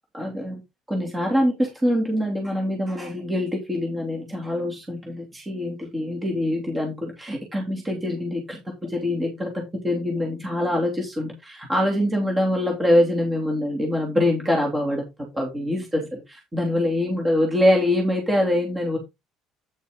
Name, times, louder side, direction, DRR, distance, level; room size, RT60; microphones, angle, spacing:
voice 1, 0.1-0.6 0.9-15.0 15.3-19.0, left 1 dB, 10° right, -1 dB, 2.9 m, -24 dB
9.2 x 6.7 x 3.7 m, 0.22 s
cardioid pair, 170°, 0 cm